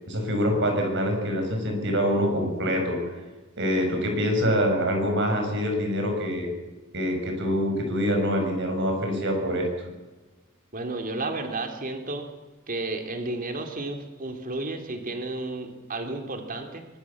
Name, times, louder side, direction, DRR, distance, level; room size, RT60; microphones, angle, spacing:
voice 1, 0.1-3.0 3.6-6.5 6.9-9.7, equal, 60° right, 3 dB, 7.3 m, -25 dB
voice 2, 10.7-12.3 12.7-16.9, right 2 dB, 40° right, 5 dB, 3.0 m, -32 dB
24.0 x 21.5 x 7.3 m, 1.2 s
head